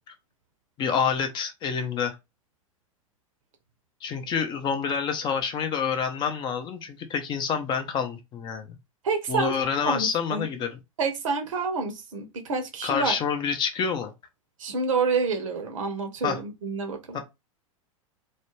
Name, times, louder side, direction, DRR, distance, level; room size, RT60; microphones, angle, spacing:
voice 1, 0.8-2.1 4.0-8.8 9.3-10.8 12.8-14.1 16.2-16.4 17.1-17.2, left 6 dB, 25° left, 0.5 m, -27 dB
voice 2, 9.0-9.6 9.8-10.5 11.0-13.2 14.6-17.2, right 4 dB, 65° right, 0.7 m, -28 dB
2.4 x 2.1 x 3.0 m
figure-of-eight pair, 90°, 18 cm